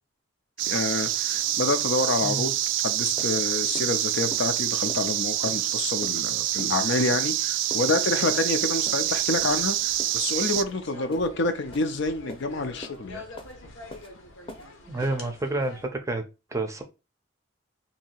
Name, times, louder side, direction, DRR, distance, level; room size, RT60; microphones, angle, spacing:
sound 1, 0.6-10.6, right 13 dB, 65° right, 0.3 m, -26 dB
voice 1, 0.7-2.5 2.8-13.2, left 2 dB, 65° left, 0.5 m, -28 dB
sound 2, 2.7-2.8 3.2-3.3 3.7-3.9 4.3-4.4 4.9-5.0 5.4-5.6 6.0-6.2 6.6-6.7 7.1-7.3 7.7-7.9 8.3-8.5 8.9-9.0 9.4-9.6 10.0-10.2 10.5-10.7 11.1-11.3 11.7-11.9 12.3-12.4 12.8-13.0 13.4-13.5 13.9-14.1 14.5-14.7 15.0-15.1, left 1 dB, 25° left, 0.7 m, -42 dB
sound 3, 8.9-15.9, left 2 dB, 80° left, 0.9 m, -46 dB
voice 2, 14.9-16.2 16.5-16.8, right 2 dB, 15° right, 0.6 m, -29 dB
2.8 x 2.7 x 4.2 m
head